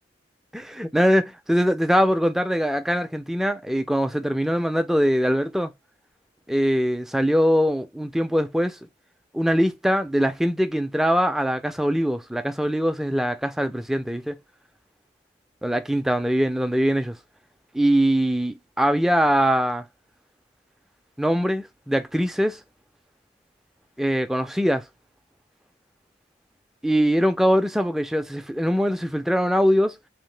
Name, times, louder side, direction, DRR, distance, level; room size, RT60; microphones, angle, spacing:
voice 1, 0.5-5.7 6.5-8.8 9.3-14.4 15.6-17.2 17.7-19.9 21.2-22.6 24.0-24.8 26.8-30.0, equal, ahead, 0.3 m, -22 dB
2.8 x 2.4 x 3.2 m
head